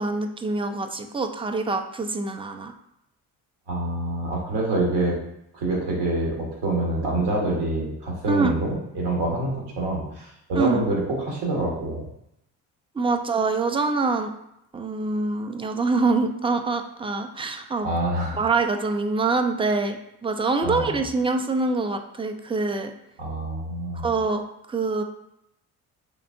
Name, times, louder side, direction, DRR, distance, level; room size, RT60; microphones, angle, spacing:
voice 1, 0.0-2.7 8.3-8.5 10.5-10.8 13.0-14.3 14.7-17.9 18.3-20.0 20.2-22.9 23.9-24.4 24.7-25.0, right 3 dB, 15° right, 6 dB, 0.4 m, -25 dB
voice 2, 3.7-5.2 5.5-12.0 17.8-18.4 20.6-21.0 23.2-24.0, right 2 dB, 65° right, -2 dB, 1.4 m, -26 dB
3.9 x 3.3 x 2.6 m, 0.80 s
hypercardioid pair, 50°, 44 cm